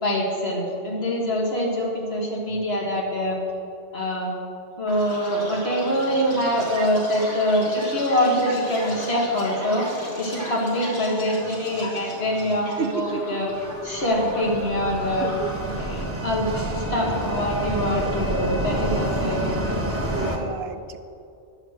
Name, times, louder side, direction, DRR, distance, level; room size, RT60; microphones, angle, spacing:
voice 1, 0.0-3.4 3.9-4.3 4.8-9.9 10.2-13.5 13.8-15.3 15.8-19.8, equal, 55° left, -3 dB, 2.3 m, -24 dB
Chirp tweet, 4.9-16.0, equal, 85° left, 2.5 m, -37 dB
voice 2, 12.8-13.2 13.9-14.3 15.2-16.5 17.1-17.2 20.1-21.0, right 7 dB, 65° right, 9 dB, 0.8 m, -33 dB
sound 1, 13.5-20.4, right 1 dB, 10° right, 1.2 m, -28 dB
10.5 x 6.2 x 7.6 m, 2.6 s
omnidirectional pair, 1.2 m